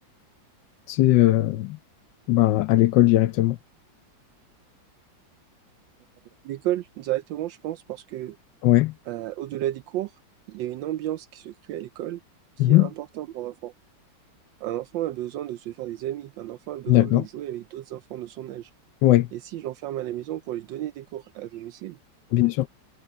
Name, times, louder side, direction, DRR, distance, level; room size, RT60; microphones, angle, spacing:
voice 1, 0.9-1.8 2.3-3.6 8.6-8.9 12.6-12.9 16.9-17.2 19.0-19.3 22.3-22.7, left 15 dB, 75° left, 1.3 m, -19 dB
voice 2, 6.4-8.4 9.1-10.1 10.5-12.2 12.6-13.7 14.6-18.7 19.3-22.0, right 13 dB, 80° right, 1.3 m, -32 dB
omnidirectional pair, 2.1 m